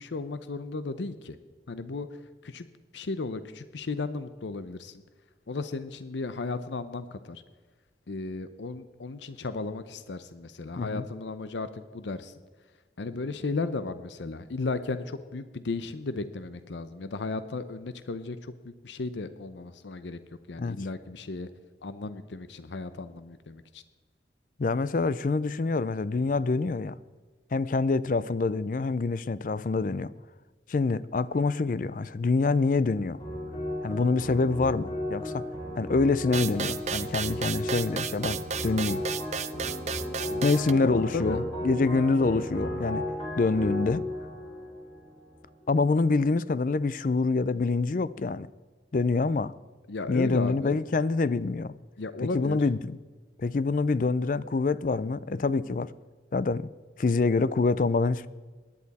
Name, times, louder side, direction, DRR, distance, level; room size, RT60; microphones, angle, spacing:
voice 1, 0.0-1.4 1.7-2.1 2.4-2.7 2.9-5.0 5.5-7.4 8.1-12.3 13.0-20.2 20.5-21.5 21.8-23.8 40.3-41.4 49.9-50.8 52.0-52.6, left 3 dB, 85° left, 0.7 m, -35 dB
voice 2, 24.6-26.9 27.5-30.1 30.7-33.2 33.8-35.4 35.8-39.0 40.4-43.0 43.4-44.0 45.7-48.5 48.9-49.5 50.1-51.7 52.2-53.0 53.4-55.9 56.3-56.7 57.0-58.3, left 3 dB, 45° left, 0.4 m, -26 dB
sound 1, 33.2-45.7, left 1 dB, 30° left, 3.7 m, -35 dB
sound 2, 36.3-40.7, right 7 dB, 40° right, 0.5 m, -33 dB
17.5 x 11.0 x 4.2 m
head